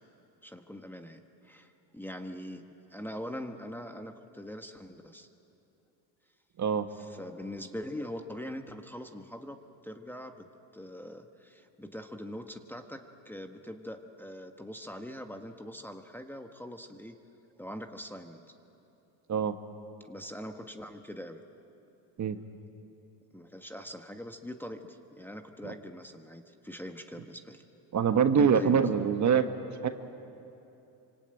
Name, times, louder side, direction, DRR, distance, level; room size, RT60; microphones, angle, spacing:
voice 1, 0.4-2.6 2.9-5.3 6.9-9.6 9.8-10.4 10.7-17.2 17.6-18.4 20.1-21.4 23.3-27.8 28.4-29.0, equal, 5° left, 4 dB, 1.3 m, -42 dB
voice 2, 27.9-29.5 29.8-29.9, right 7 dB, 40° right, 8 dB, 1.5 m, -24 dB
25.5 x 25.5 x 9.0 m, 2.9 s
cardioid pair, 110°, 45 cm